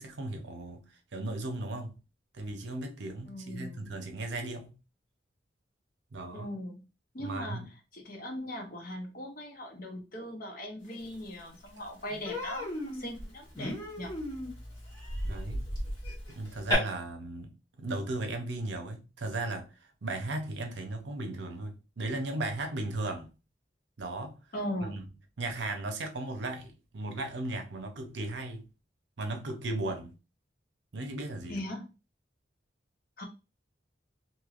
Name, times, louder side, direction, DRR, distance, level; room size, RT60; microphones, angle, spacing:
voice 1, 0.0-2.0 2.3-4.7 6.1-6.5 7.2-7.7 12.1-12.2 15.2-15.7 16.3-23.3 24.0-24.4 24.8-25.0 25.4-28.7 29.2-30.1 30.9-31.7, right 2 dB, 70° right, 0.6 m, -36 dB
voice 2, 3.2-3.9 6.3-6.8 7.1-7.6 7.9-14.1 24.5-25.0 31.5-31.8 33.2-33.3, left 1 dB, 50° left, 0.9 m, -39 dB
sound 1, 10.8-16.4, equal, 85° left, 1.3 m, -38 dB
Human voice, 11.2-11.3 11.7-11.9 12.2-16.7, left 2 dB, 20° left, 1.1 m, -37 dB
3.1 x 2.7 x 2.4 m
head